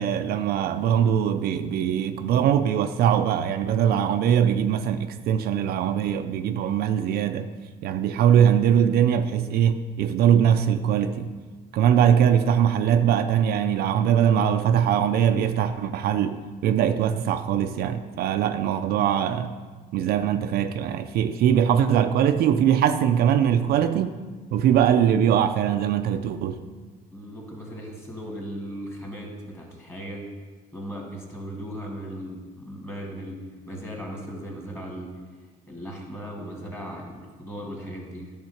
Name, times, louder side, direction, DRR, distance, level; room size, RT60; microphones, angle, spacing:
voice 1, 0.0-7.5 7.8-11.3 11.7-19.5 19.9-24.1 24.5-26.6, right 9 dB, 70° right, 0.4 m, -21 dB
voice 2, 27.1-30.2 30.7-33.4 33.7-35.1 35.7-38.3, equal, 15° left, 2.0 m, -37 dB
10.5 x 3.6 x 5.7 m
cardioid pair, 110°, 17 cm